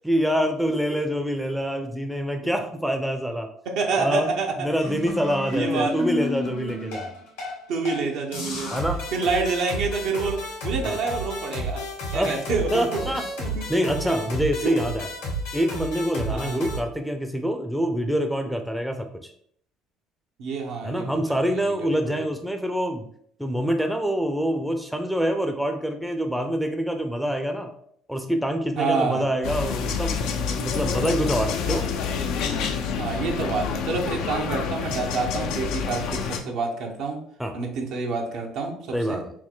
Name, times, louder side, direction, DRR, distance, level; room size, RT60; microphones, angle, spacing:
voice 1, 0.0-3.5 4.0-4.3 4.6-7.1 8.7-9.1 10.8-11.0 12.1-12.4 12.7-13.2 13.7-15.1 15.5-19.3 20.8-23.1 23.4-27.7 28.1-31.9 37.4-37.5 38.9-39.3, equal, ahead, 5 dB, 0.5 m, -26 dB
voice 2, 3.7-4.7 5.5-6.0 7.7-8.8 9.1-11.8 12.1-13.0 13.4-13.6 14.6-14.8 16.3-16.6 20.4-22.3 28.8-29.3 33.0-37.2 37.5-39.2, right 4 dB, 65° right, 1 dB, 0.8 m, -28 dB
sound 1, 4.8-7.6 7.8-8.0 8.3-16.8, equal, 85° left, 1.6 m, -32 dB
sound 2, 29.4-36.4, left 6 dB, 70° left, 0.5 m, -28 dB
4.4 x 2.1 x 3.7 m, 0.65 s
hypercardioid pair, 65°, 0 cm